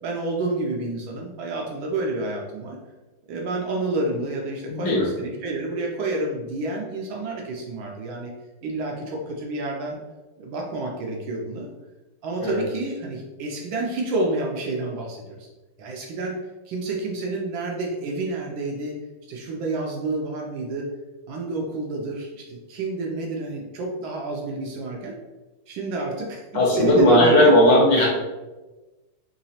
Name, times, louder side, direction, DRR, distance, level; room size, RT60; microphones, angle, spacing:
voice 1, 0.0-2.8 3.3-8.3 8.6-10.0 10.4-11.7 12.2-15.5 15.8-16.4 16.7-19.0 19.3-20.9 21.3-25.2 25.7-27.5, right 2 dB, 75° right, 0 dB, 1.2 m, -29 dB
voice 2, 4.7-5.1 12.4-12.6 26.5-28.1, left 1 dB, 65° left, -3 dB, 1.2 m, -17 dB
3.8 x 2.9 x 2.7 m, 1.2 s
omnidirectional pair, 2.4 m